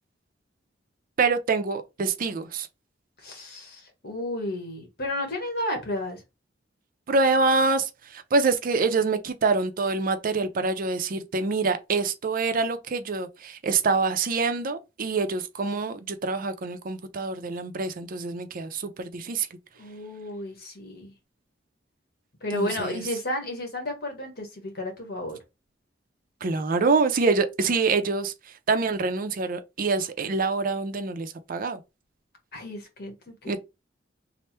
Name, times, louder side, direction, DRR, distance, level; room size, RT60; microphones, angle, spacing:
voice 1, 1.2-2.7 7.1-19.5 22.5-23.0 26.4-31.8 33.5-33.6, right 4 dB, 50° right, 0.5 m, -26 dB
voice 2, 3.2-6.2 19.8-21.1 22.4-25.4 32.5-33.6, left 1 dB, 60° left, 1.3 m, -32 dB
3.3 x 2.0 x 4.2 m
head